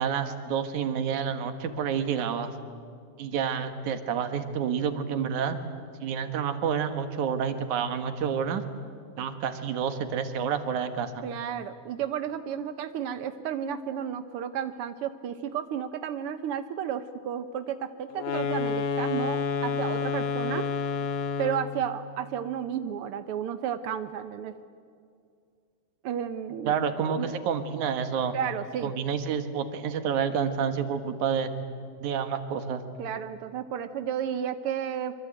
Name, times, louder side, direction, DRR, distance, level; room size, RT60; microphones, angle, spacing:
voice 1, 0.0-2.5 3.2-5.6 6.0-8.6 9.2-11.2 26.7-28.4 28.8-31.5 32.0-32.8, right 7 dB, 70° right, 9 dB, 2.9 m, -29 dB
voice 2, 11.2-20.7 21.4-24.5 26.0-26.7 27.0-27.3 28.3-28.9 33.0-35.1, right 9 dB, 90° right, 10 dB, 1.2 m, -32 dB
sound 1, 18.1-21.8, left 5 dB, 70° left, 2.6 m, -29 dB
25.0 x 24.0 x 8.9 m, 2.3 s
omnidirectional pair, 3.7 m